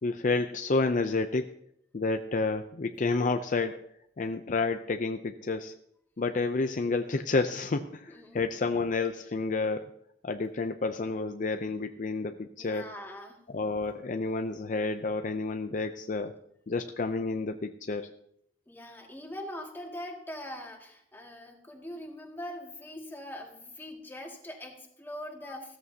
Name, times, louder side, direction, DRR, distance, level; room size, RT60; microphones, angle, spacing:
voice 1, 0.0-1.5 1.9-3.8 4.2-5.7 6.2-9.9 10.2-12.9 13.5-16.3 16.7-18.1, left 3 dB, 45° left, 7 dB, 0.5 m, -30 dB
voice 2, 8.1-8.4 12.6-13.4 18.7-25.8, left 1 dB, 10° left, 0 dB, 2.1 m, -42 dB
15.5 x 13.5 x 2.8 m, 0.73 s
head